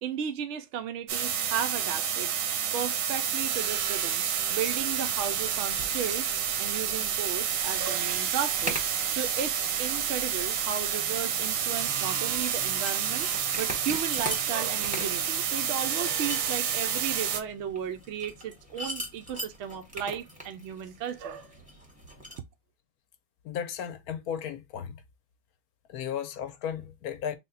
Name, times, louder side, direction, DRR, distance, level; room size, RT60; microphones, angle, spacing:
voice 1, 0.0-2.3 2.7-8.8 9.1-13.3 13.6-21.5, right 8 dB, 85° right, 0.6 m, -35 dB
sound 1, 1.1-17.4, right 8 dB, 65° right, 0.9 m, -29 dB
sound 2, 4.5-22.4, equal, 5° right, 0.7 m, -43 dB
voice 2, 23.4-25.0 25.9-27.4, left 8 dB, 70° left, 1.0 m, -35 dB
3.5 x 2.2 x 3.7 m
omnidirectional pair, 1.8 m